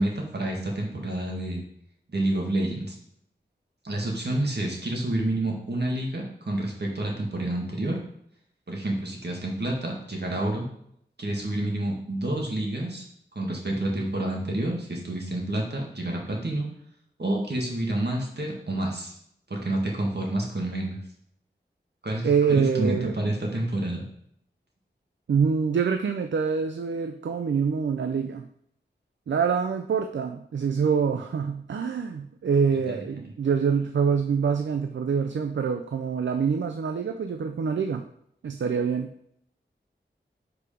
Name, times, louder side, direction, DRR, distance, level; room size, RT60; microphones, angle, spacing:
voice 1, 0.0-1.6 2.1-3.0 3.8-8.0 8.7-10.7 11.2-13.0 13.4-16.7 17.2-19.1 19.5-21.0 22.0-24.0, right 1 dB, 60° right, -1 dB, 1.8 m, -28 dB
voice 2, 22.2-23.1 25.3-28.5 29.3-38.1 38.4-39.1, right 6 dB, 80° right, 7 dB, 0.4 m, -25 dB
4.9 x 4.8 x 5.0 m, 0.71 s
cardioid pair, 40°, 19 cm